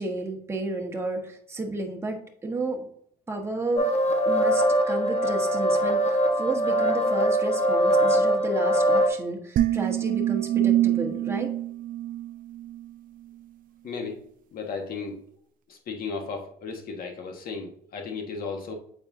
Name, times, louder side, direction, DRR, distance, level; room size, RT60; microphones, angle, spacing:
voice 1, 0.0-2.8 3.3-3.9 4.2-11.5, right 2 dB, 15° right, 1 dB, 1.3 m, -32 dB
sound 1, 3.8-9.1, equal, 40° left, 1.1 m, -22 dB
sound 2, 9.6-12.9, right 13 dB, 55° right, 0.4 m, -25 dB
voice 2, 13.8-14.2 14.5-15.2 15.7-18.7, left 4 dB, 60° left, 3 dB, 1.5 m, -35 dB
8.1 x 4.4 x 2.7 m, 0.63 s
cardioid pair, 110°, 17 cm